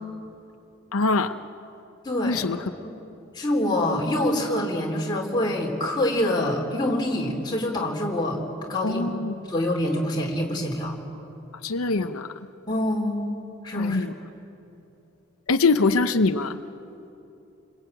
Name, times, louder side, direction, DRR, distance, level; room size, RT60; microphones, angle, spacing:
voice 1, 0.9-1.4 2.2-2.7 8.8-9.3 11.6-12.5 13.8-14.1 15.5-16.6, left 3 dB, 90° left, 8 dB, 0.8 m, -23 dB
voice 2, 2.0-2.4 2.8-3.0 3.3-8.4 8.7-9.1 9.5-11.0 12.7-14.1, left 1 dB, 20° left, -1 dB, 3.5 m, -26 dB
29.5 x 21.5 x 9.0 m, 2.9 s
head